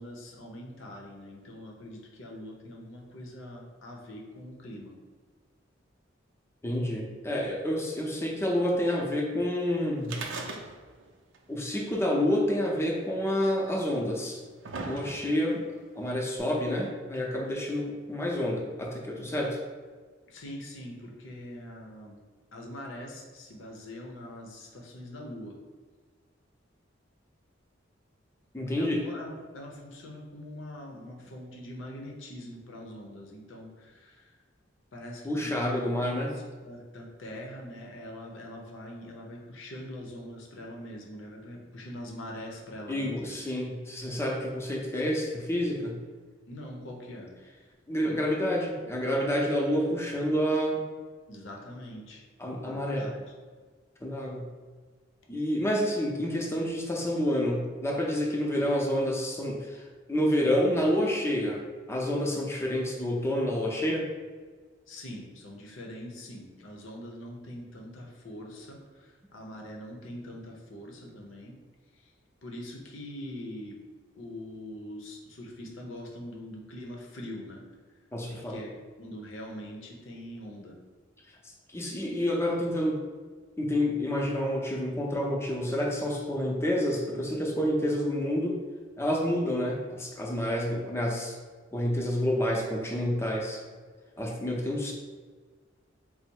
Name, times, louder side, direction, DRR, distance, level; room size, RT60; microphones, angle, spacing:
voice 1, 0.0-4.9 20.3-22.2 22.5-25.6 28.8-34.3 34.9-43.3 46.5-47.3 51.3-52.2 52.6-53.3 64.9-71.5 72.4-73.8 74.1-77.6 78.3-80.7, left 1 dB, 80° left, 0 dB, 0.7 m, -43 dB
voice 2, 6.6-10.2 11.5-14.4 14.8-15.6 16.0-19.6 28.5-29.0 35.2-36.3 42.9-46.0 47.9-50.9 52.4-53.1 54.0-54.5 55.3-61.6 61.9-64.1 78.1-78.6 81.7-83.0 83.6-88.6 89.0-91.3 91.7-93.6 94.2-94.9, equal, 15° left, -1 dB, 0.6 m, -28 dB
sound 1, 10.0-11.1 11.3-11.4 12.4-12.5 13.4-13.5 14.2-15.5 16.4-16.5, right 3 dB, 75° right, 0.5 m, -38 dB
4.0 x 2.0 x 4.5 m, 1.5 s
head